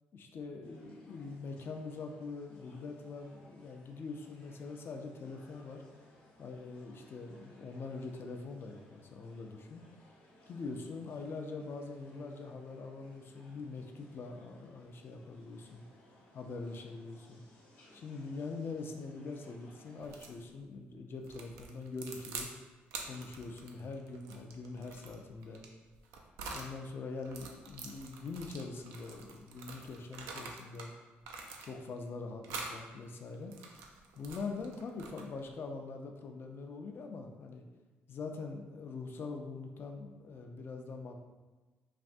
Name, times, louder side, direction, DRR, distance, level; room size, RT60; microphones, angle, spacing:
voice 1, 0.1-5.8 6.4-9.8 10.5-15.8 16.3-17.4 17.9-22.5 23.0-25.6 26.5-30.9 31.6-33.5 34.1-37.6 38.1-41.2, left 4 dB, 50° left, 4 dB, 0.4 m, -43 dB
sound 1, 0.6-20.4, left 1 dB, 85° left, 0.9 m, -62 dB
sound 2, 20.0-20.4 21.2-22.5 22.9-26.7 27.2-30.9 31.2-32.0 32.4-32.8 33.3-35.5, right 4 dB, 85° right, 0.3 m, -46 dB
3.2 x 2.5 x 2.5 m, 1.2 s
supercardioid pair, 60°, 5 cm